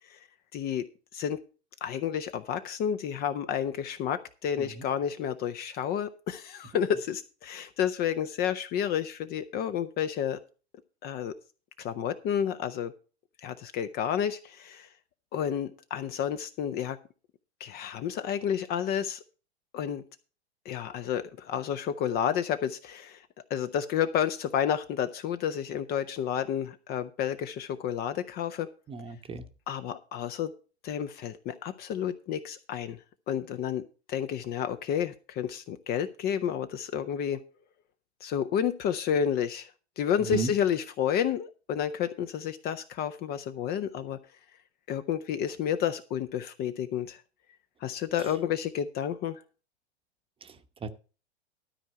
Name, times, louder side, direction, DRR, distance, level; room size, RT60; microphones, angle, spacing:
voice 1, 0.5-0.8 1.1-1.4 1.8-10.4 11.0-11.3 11.8-12.9 13.4-14.9 15.3-17.0 17.6-19.2 19.7-20.0 20.7-23.2 23.5-28.7 29.7-30.5 30.8-33.0 33.3-33.8 34.1-37.4 38.2-39.7 40.0-44.2 44.9-47.2 47.8-49.4, left 9 dB, 30° left, 0.6 m, -30 dB
voice 2, 28.9-29.4 40.2-40.5 48.2-48.3 50.4-50.9, right 5 dB, 15° right, 0.9 m, -35 dB
13.0 x 4.5 x 7.4 m
hypercardioid pair, 110°, 33 cm